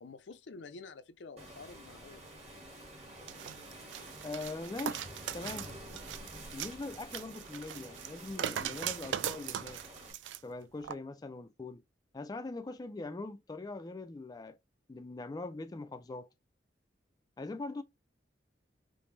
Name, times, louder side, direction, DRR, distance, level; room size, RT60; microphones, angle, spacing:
voice 1, 0.0-2.3, left 4 dB, 85° left, 0.5 m, -49 dB
Waves surf, 1.4-10.1, right 1 dB, 40° right, 1.7 m, -49 dB
sound 1, 3.3-10.4 10.8-11.0, right 10 dB, 85° right, 0.3 m, -40 dB
voice 2, 4.2-5.1 5.3-5.7 6.5-9.8 10.4-11.8 12.1-14.6 14.9-16.3 17.4-17.8, left 3 dB, 20° left, 0.3 m, -42 dB
5.0 x 2.0 x 3.2 m
head